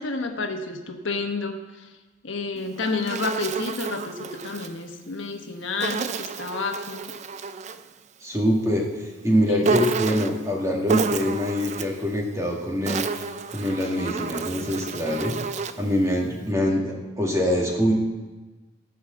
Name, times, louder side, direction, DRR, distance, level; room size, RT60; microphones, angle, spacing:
voice 1, 0.0-1.9 2.2-7.1 9.5-9.7, left 3 dB, 80° left, 5 dB, 1.1 m, -30 dB
Insect, 2.6-4.7 5.8-7.9 9.6-10.4 10.9-12.0 12.6-15.9, right 4 dB, 40° right, 0.4 m, -30 dB
voice 2, 8.2-13.2 13.5-15.3 15.8-17.9, equal, 15° right, -1 dB, 1.9 m, -24 dB
14.5 x 4.8 x 7.7 m, 1.2 s
head